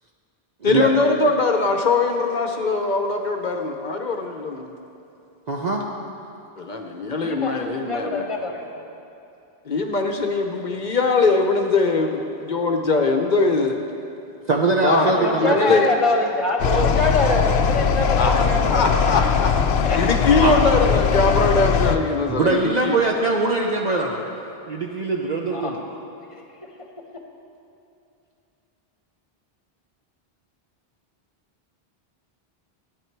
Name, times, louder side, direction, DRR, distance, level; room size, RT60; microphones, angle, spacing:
voice 1, 0.6-4.7 6.6-8.2 9.7-13.8 14.8-15.1 15.4-15.9 18.1-23.0, left 3 dB, 50° left, 4 dB, 0.8 m, -21 dB
voice 2, 5.5-5.8 14.5-15.8 20.4-20.5 22.3-24.2 24.7-25.8, right 3 dB, 45° right, 0 dB, 0.8 m, -22 dB
voice 3, 7.2-8.6 15.0-18.9 19.8-20.0 25.5-25.7 26.3-26.4, left 2 dB, 30° left, 2 dB, 1.1 m, -24 dB
sound 1, 16.6-22.0, left 6 dB, 85° left, 0.8 m, -20 dB
14.0 x 9.4 x 4.6 m, 2.7 s
omnidirectional pair, 1.0 m